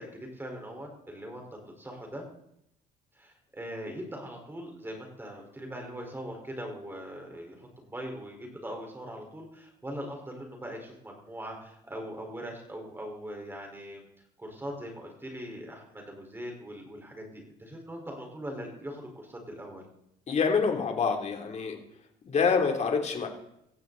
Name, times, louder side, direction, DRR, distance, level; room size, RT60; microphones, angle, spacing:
voice 1, 0.0-2.2 3.1-14.1 14.4-19.9, equal, 15° right, 2 dB, 4.6 m, -41 dB
voice 2, 20.3-21.8 22.3-23.3, left 5 dB, 40° left, 3 dB, 3.3 m, -26 dB
18.5 x 15.0 x 4.1 m, 0.77 s
cardioid pair, 110°, 17 cm